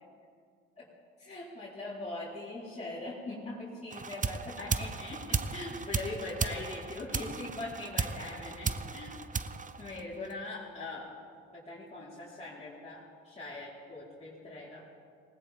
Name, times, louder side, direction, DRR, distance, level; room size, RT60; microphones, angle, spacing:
voice 1, 1.2-9.2 9.8-11.1 11.5-14.8, left 2 dB, 20° left, -9 dB, 4.6 m, -41 dB
sound 1, 3.9-10.5, right 5 dB, 25° right, 0.8 m, -35 dB
19.5 x 18.5 x 3.7 m, 2.3 s
supercardioid pair, 65°, 32 cm